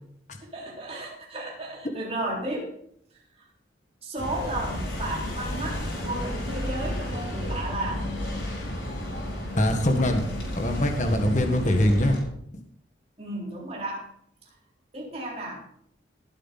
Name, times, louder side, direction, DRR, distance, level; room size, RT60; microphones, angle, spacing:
voice 1, 0.4-2.7 4.0-8.0 13.2-14.1 14.9-15.6, right 1 dB, 30° right, -3 dB, 3.8 m, -33 dB
sound 1, 4.2-12.2, left 1 dB, 75° left, 5.1 m, -32 dB
voice 2, 9.6-10.2 10.5-12.2, left 1 dB, 40° left, 5 dB, 1.5 m, -22 dB
18.5 x 8.1 x 4.1 m, 0.70 s
head